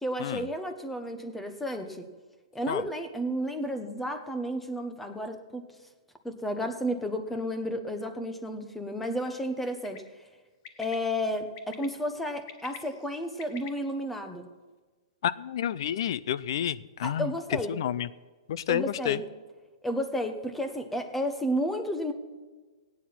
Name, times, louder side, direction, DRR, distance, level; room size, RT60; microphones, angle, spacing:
voice 1, 0.0-2.1 2.5-5.6 6.2-10.0 10.8-14.5 17.0-17.8 18.7-19.2 19.8-22.1, equal, 5° left, 7 dB, 0.9 m, -32 dB
Bird, 9.7-10.0 10.6-10.9 11.6-11.9 12.3-13.7, left 8 dB, 35° left, 1.2 m, -45 dB
voice 2, 15.2-17.3 17.7-18.1 18.5-19.2, left 10 dB, 50° left, 18 dB, 0.5 m, -30 dB
16.5 x 9.5 x 5.8 m, 1.3 s
hypercardioid pair, 165°, 3 cm